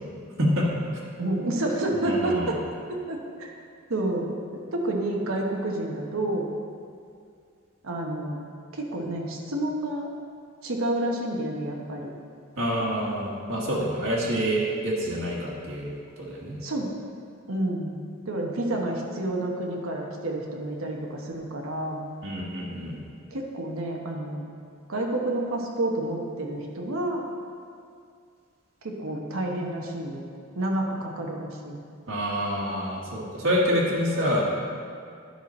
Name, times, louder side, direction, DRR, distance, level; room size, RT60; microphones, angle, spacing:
voice 1, 1.2-2.6 2.9-3.5 3.9-6.5 7.8-8.4 8.7-10.1 10.6-12.1 16.6-16.9 17.5-18.0 18.3-22.0 23.3-24.4 24.9-27.2 28.8-30.2 30.6-31.8, right 1 dB, 85° right, 0 dB, 1.0 m, -29 dB
voice 2, 2.0-2.5 12.6-16.6 22.2-23.0 32.1-34.4, equal, 70° right, -5 dB, 1.5 m, -27 dB
10.5 x 5.7 x 4.3 m, 2.3 s
head